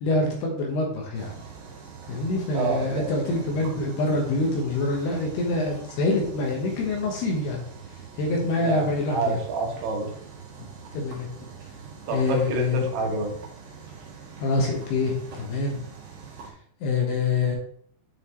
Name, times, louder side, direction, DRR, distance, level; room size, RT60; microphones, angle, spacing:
voice 1, 0.0-1.3 2.1-7.6 8.2-9.4 10.9-11.3 12.1-12.8 14.4-15.8 16.8-17.6, left 3 dB, 70° left, 0 dB, 2.9 m, -25 dB
sound 1, 1.1-16.5, right 6 dB, 55° right, 2.7 m, -43 dB
voice 2, 2.5-3.1 8.2-8.3 8.6-10.1 12.1-13.3, right 3 dB, 75° right, 1 dB, 3.5 m, -28 dB
9.8 x 5.6 x 3.1 m, 0.62 s
omnidirectional pair, 5.5 m